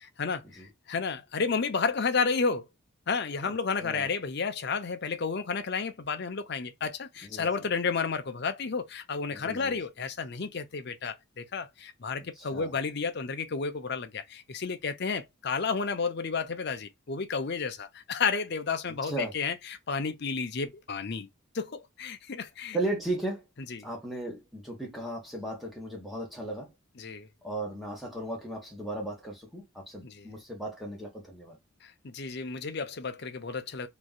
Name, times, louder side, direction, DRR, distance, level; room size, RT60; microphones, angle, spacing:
voice 1, 0.0-2.7 3.1-21.3 21.5-22.8 23.7-23.9 27.0-27.3 30.0-30.3 31.8-33.9, left 5 dB, 50° left, 0.6 m, -32 dB
voice 2, 7.2-7.7 9.3-9.8 12.4-12.7 18.9-19.3 22.7-23.4 23.8-26.7 27.4-31.6, right 1 dB, ahead, 1.1 m, -36 dB
3.1 x 2.6 x 2.2 m
head